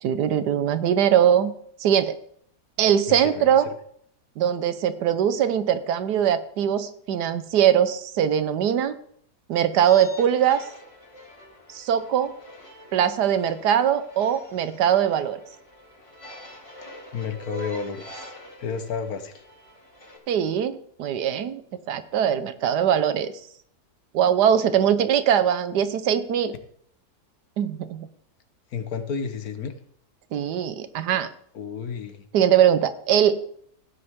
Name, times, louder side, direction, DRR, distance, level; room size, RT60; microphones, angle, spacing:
voice 1, 0.0-1.5 1.8-2.1 2.8-3.7 4.4-9.0 9.5-10.6 11.7-12.3 12.9-15.4 20.3-21.6 21.9-23.3 24.1-26.5 27.6-28.1 30.3-31.3 32.3-33.4, right 9 dB, 85° right, 12 dB, 1.4 m, -21 dB
voice 2, 3.1-3.6 17.1-18.3 18.6-19.4 28.7-29.7 31.5-32.2, left 6 dB, 65° left, 9 dB, 1.5 m, -31 dB
sound 1, 9.9-20.2, equal, 20° left, 1.8 m, -45 dB
16.0 x 9.5 x 3.6 m, 0.65 s
omnidirectional pair, 1.7 m